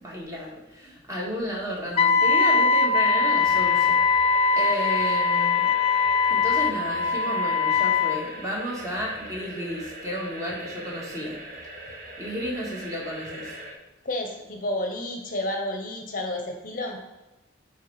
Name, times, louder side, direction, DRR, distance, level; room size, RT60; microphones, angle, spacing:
voice 1, 0.0-4.0 4.5-5.7 6.3-11.4 12.2-13.6, equal, 15° right, -3 dB, 1.6 m, -32 dB
Wind instrument woodwind instrument, 2.0-8.2, left 5 dB, 30° left, 0.3 m, -21 dB
sound 1, 3.4-13.7, right 1 dB, 50° right, 1.0 m, -40 dB
voice 2, 14.0-17.0, left 1 dB, 45° left, 3 dB, 0.7 m, -30 dB
9.7 x 3.3 x 4.8 m, 1.0 s
head